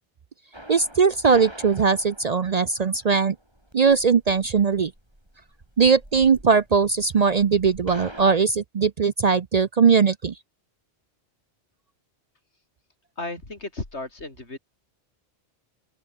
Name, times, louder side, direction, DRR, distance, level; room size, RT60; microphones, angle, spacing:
sound 1, 0.5-8.4, right 1 dB, 25° right, 6.8 m, -44 dB
voice 1, 0.7-3.4 3.7-4.9 5.8-10.3, right 5 dB, 45° right, 0.6 m, -20 dB
voice 2, 13.2-14.6, left 2 dB, 80° left, 4.6 m, -34 dB
open air
omnidirectional pair, 1.1 m